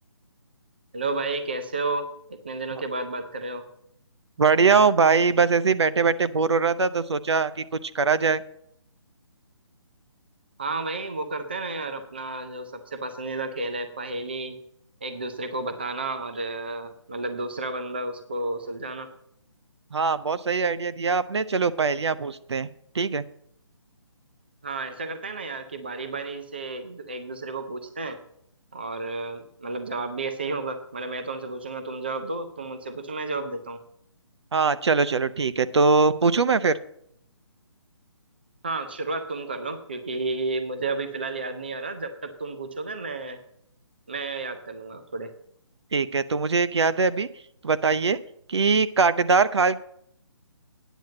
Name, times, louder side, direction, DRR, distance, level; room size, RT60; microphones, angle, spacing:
voice 1, 0.9-3.7 10.6-14.6 15.0-19.1 24.6-28.2 28.7-33.8 38.6-43.4 44.1-45.3, right 3 dB, 20° right, 9 dB, 0.5 m, -32 dB
voice 2, 4.4-8.4 19.9-22.7 22.9-23.2 34.5-36.8 45.9-47.3 47.6-48.2 48.5-49.8, right 4 dB, 60° right, 14 dB, 0.6 m, -22 dB
9.2 x 7.4 x 7.6 m, 0.70 s
hypercardioid pair, 180°, 16 cm